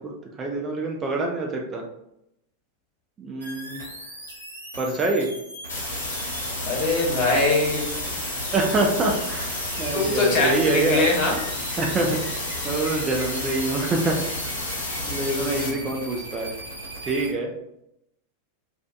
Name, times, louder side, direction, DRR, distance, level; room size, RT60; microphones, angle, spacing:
voice 1, 0.4-1.8 3.2-3.8 4.8-5.3 8.5-11.0 11.8-12.2 12.6-14.2 15.1-16.5 17.0-17.5, right 2 dB, 25° right, 0 dB, 0.4 m, -25 dB
sound 1, 3.4-17.3, right 1 dB, 80° right, 0.8 m, -39 dB
sound 2, 5.7-15.7, left 1 dB, 70° left, 1.0 m, -31 dB
voice 2, 6.6-7.9 9.9-11.4 15.1-15.7, left 3 dB, 40° left, -3 dB, 0.9 m, -23 dB
2.4 x 2.2 x 2.3 m, 0.81 s
figure-of-eight pair, 90°, 0 cm